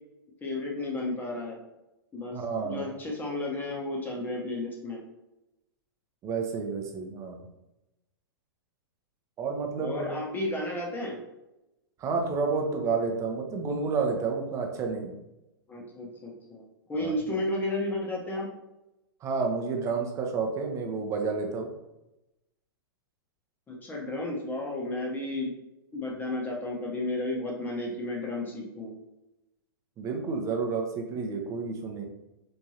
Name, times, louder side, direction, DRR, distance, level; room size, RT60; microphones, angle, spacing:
voice 1, 0.4-1.6 2.1-5.0 9.8-11.2 15.7-16.6 16.9-18.5 23.7-25.5 25.9-28.9, left 2 dB, 15° left, -2 dB, 0.8 m, -33 dB
voice 2, 2.3-2.9 6.2-7.5 9.4-10.1 12.0-15.1 17.0-17.1 19.2-21.7 30.0-32.0, right 4 dB, 25° right, 3 dB, 0.6 m, -30 dB
3.5 x 3.1 x 2.8 m, 0.94 s
figure-of-eight pair, 105°, 12 cm